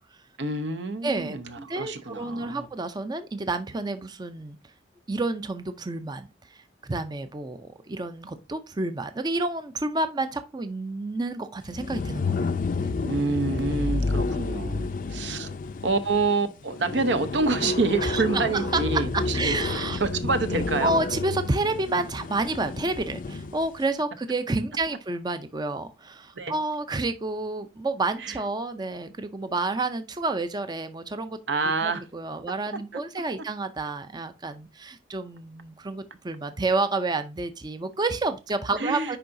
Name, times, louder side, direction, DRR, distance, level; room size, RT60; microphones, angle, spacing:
voice 1, 0.4-2.7 13.0-15.5 15.8-21.0 26.4-26.5 28.2-28.4 31.5-32.0 38.8-39.2, right 3 dB, 75° right, 0.8 m, -27 dB
voice 2, 1.0-4.6 5.1-12.5 12.8-12.9 18.0-18.2 18.5-20.0 20.8-31.4 31.8-39.2, right 2 dB, 25° right, 0.5 m, -29 dB
sound 1, 11.7-23.7, left 3 dB, 50° left, 0.5 m, -30 dB
10.0 x 3.8 x 2.6 m
head